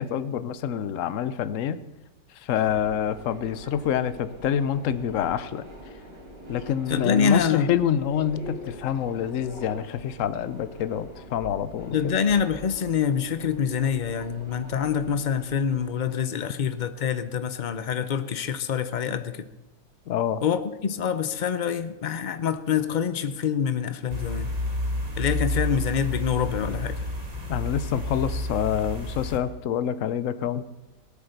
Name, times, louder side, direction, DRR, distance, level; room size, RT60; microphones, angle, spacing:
voice 1, 0.0-1.8 2.4-5.6 6.5-12.2 20.1-20.4 27.5-30.6, left 9 dB, 60° left, 14 dB, 0.9 m, -27 dB
Subway metro underground, 2.7-15.8, equal, 85° right, 5.2 m, -44 dB
voice 2, 6.9-7.7 11.9-19.5 20.4-24.5 25.2-27.0, left 7 dB, 75° left, 11 dB, 0.4 m, -26 dB
sound 1, 24.1-29.4, left 1 dB, 20° right, 1.9 m, -30 dB
17.5 x 8.6 x 6.6 m, 1.0 s
omnidirectional pair, 1.8 m